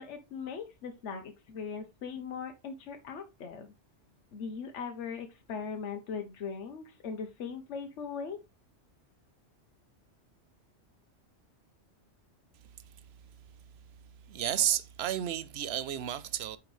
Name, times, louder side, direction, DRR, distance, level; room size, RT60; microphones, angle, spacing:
voice 1, 0.0-3.7 4.3-8.4, left 6 dB, 80° left, 1.1 m, -39 dB
voice 2, 14.3-16.6, right 11 dB, 65° right, 0.8 m, -31 dB
8.8 x 3.5 x 3.2 m
omnidirectional pair, 1.2 m